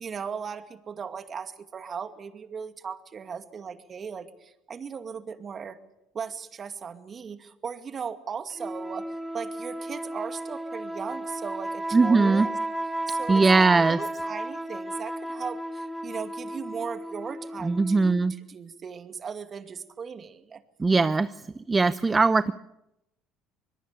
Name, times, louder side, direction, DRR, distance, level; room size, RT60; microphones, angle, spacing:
voice 1, 0.0-5.8 6.1-9.1 9.3-12.5 13.1-20.6, right 6 dB, 40° right, 8 dB, 2.3 m, -37 dB
sound 1, 8.6-18.3, right 1 dB, 5° right, 2.1 m, -33 dB
voice 2, 11.9-12.5 13.3-14.0 17.6-18.3 20.8-21.3 21.7-22.5, right 3 dB, 20° right, 14 dB, 0.7 m, -20 dB
25.0 x 21.5 x 6.8 m, 0.86 s
hypercardioid pair, 75°, 0 cm